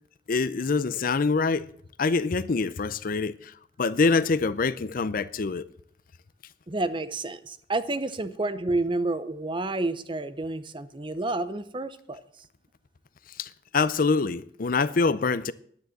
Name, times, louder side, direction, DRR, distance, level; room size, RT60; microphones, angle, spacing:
voice 1, 0.3-1.7 2.0-3.5 3.8-5.6 13.4-15.5, left 4 dB, 55° left, 0.5 m, -25 dB
voice 2, 6.7-12.2, right 2 dB, 30° right, 0.8 m, -29 dB
10.5 x 9.8 x 7.8 m
head